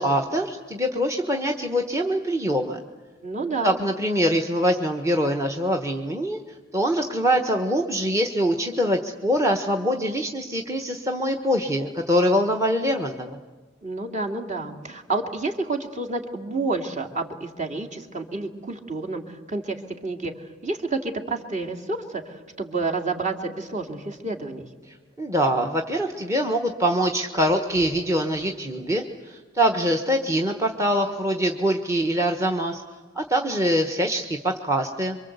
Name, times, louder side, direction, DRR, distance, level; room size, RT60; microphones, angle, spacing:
voice 1, 0.0-2.8 3.6-6.4 6.7-13.4 24.9-32.8 33.1-35.2, equal, 15° right, 5 dB, 1.2 m, -24 dB
voice 2, 3.2-3.8 13.8-20.3 20.6-24.7, right 3 dB, 40° right, 2 dB, 2.7 m, -29 dB
27.0 x 24.0 x 8.1 m, 1.4 s
head